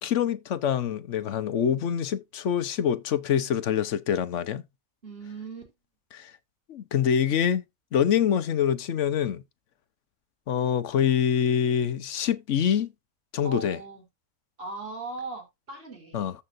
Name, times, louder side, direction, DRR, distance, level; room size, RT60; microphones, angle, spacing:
voice 1, 0.0-4.6 6.1-6.3 6.7-7.6 7.9-9.4 10.5-12.9 13.3-13.8 16.1-16.3, left 8 dB, 60° left, 1.1 m, -25 dB
voice 2, 5.0-5.7 13.4-14.0 14.6-16.3, right 3 dB, 40° right, 4.1 m, -39 dB
14.5 x 5.7 x 2.6 m
omnidirectional pair, 1.6 m